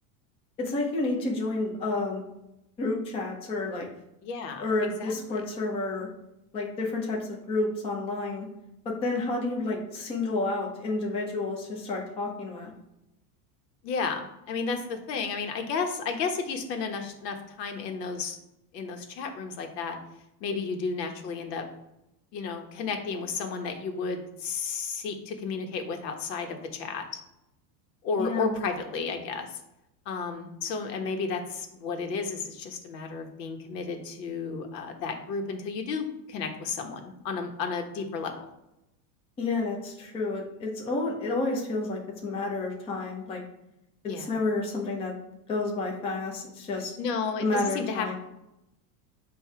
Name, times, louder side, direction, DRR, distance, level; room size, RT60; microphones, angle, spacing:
voice 1, 0.6-2.2 2.8-3.9 4.6-6.1 6.5-8.5 8.8-12.7 28.2-28.5 39.4-43.4 44.2-45.1 45.5-46.9 47.4-48.1, left 2 dB, 15° left, -1 dB, 0.5 m, -30 dB
voice 2, 4.2-4.6 5.0-5.1 13.8-18.4 18.7-20.0 20.4-21.6 22.3-27.1 28.0-29.6 30.0-38.4 44.0-44.3 47.0-48.1, left 5 dB, 85° left, 5 dB, 1.3 m, -32 dB
7.6 x 2.7 x 4.6 m, 0.88 s
supercardioid pair, 170°, 48 cm